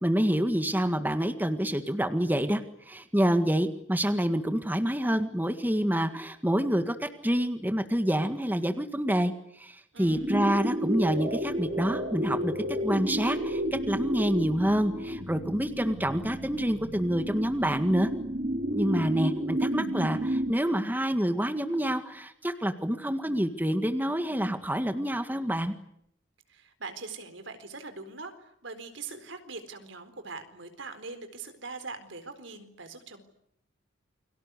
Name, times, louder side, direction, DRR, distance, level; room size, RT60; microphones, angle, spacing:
voice 1, 0.0-2.6 2.9-12.5 12.8-18.1 18.7-25.7, equal, 10° right, 8 dB, 1.8 m, -27 dB
voice 2, 9.9-10.3 26.5-33.2, right 4 dB, 70° right, 9 dB, 4.3 m, -42 dB
sound 1, 10.0-20.5, equal, 40° right, 2.8 m, -32 dB
29.5 x 24.0 x 8.3 m, 0.75 s
head